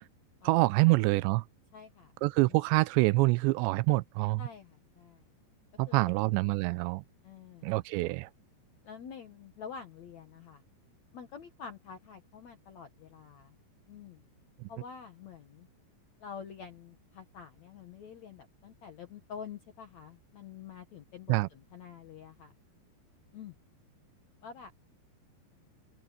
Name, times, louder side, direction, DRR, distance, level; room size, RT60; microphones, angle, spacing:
voice 1, 0.4-1.4 2.2-4.4 5.8-7.0 7.6-8.3 21.3-21.5, right 22 dB, 85° right, 2.7 m, -26 dB
voice 2, 1.7-2.1 2.5-2.6 4.4-5.3 5.9-6.6 7.2-7.7 8.8-10.6 11.1-13.6 13.9-14.2 14.7-15.7 16.2-22.5 23.3-23.6 24.4-24.7, left 7 dB, 70° left, 1.7 m, -47 dB
open air
omnidirectional pair, 5.2 m